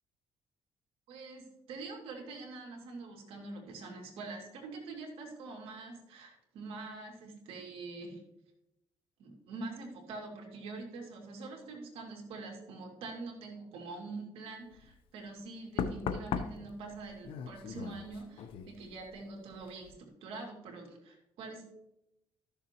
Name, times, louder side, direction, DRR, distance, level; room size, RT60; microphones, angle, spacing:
voice 1, 1.1-8.2 9.2-21.7, right 3 dB, 80° right, 1 dB, 2.4 m, -45 dB
Knock, 14.7-14.9 15.8-19.3 19.5-19.9, left 7 dB, 75° left, 0.7 m, -39 dB
13.5 x 6.8 x 2.9 m, 0.88 s
cardioid pair, 105°, 9 cm